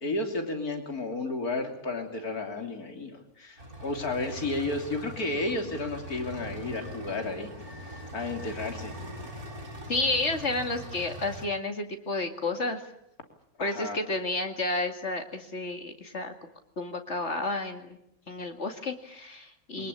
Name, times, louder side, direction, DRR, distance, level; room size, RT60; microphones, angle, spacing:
voice 1, 0.0-8.9 13.6-14.0 19.8-19.9, left 2 dB, 85° left, 4 dB, 3.6 m, -33 dB
sound 1, 3.6-11.5, right 1 dB, 80° right, 6.1 m, -41 dB
voice 2, 9.9-12.8 13.6-16.3 16.8-18.0 18.3-19.9, left 2 dB, 50° left, 5 dB, 2.6 m, -31 dB
23.5 x 21.0 x 8.5 m, 0.77 s
omnidirectional pair, 1.5 m